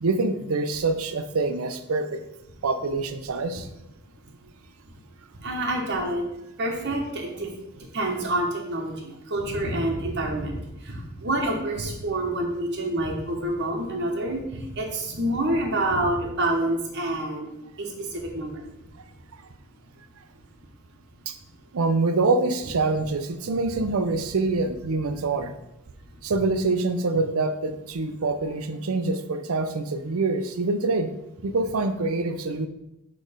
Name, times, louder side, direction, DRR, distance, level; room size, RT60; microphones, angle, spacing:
voice 1, 0.0-2.2 2.6-3.7 21.3-21.4 21.7-25.5 26.2-31.1 31.4-32.7, right 3 dB, 80° right, 9 dB, 0.6 m, -25 dB
voice 2, 5.4-6.2 6.6-7.5 7.9-10.6 10.9-14.4 14.7-17.5 17.8-17.9 18.1-18.5, right 1 dB, 55° right, 0 dB, 1.1 m, -27 dB
6.4 x 3.3 x 5.0 m, 0.86 s
head